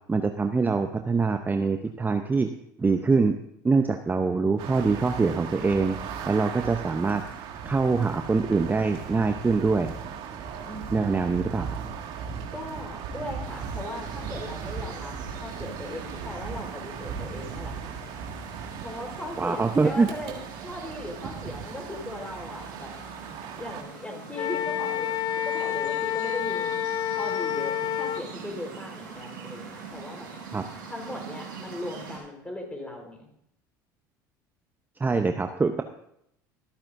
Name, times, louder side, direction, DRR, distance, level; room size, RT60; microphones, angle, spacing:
voice 1, 0.1-2.5 2.8-3.3 3.6-6.0 6.3-7.2 7.6-9.9 10.9-11.8 19.4-20.1 30.5-30.6 35.0-35.8, right 4 dB, 20° right, 6 dB, 0.8 m, -24 dB
sound 1, 4.6-23.8, right 6 dB, 60° right, 2.1 m, -38 dB
voice 2, 10.6-11.2 12.5-18.0 18.6-22.9 23.6-30.3 30.9-33.3, left 1 dB, 10° left, 1 dB, 4.3 m, -38 dB
sound 2, 13.4-32.2, right 5 dB, 85° right, 6.1 m, -43 dB
Wind instrument woodwind instrument, 24.3-28.2, left 11 dB, 45° left, 0.5 m, -28 dB
25.5 x 8.9 x 2.7 m, 0.74 s
hypercardioid pair, 75°, 10 cm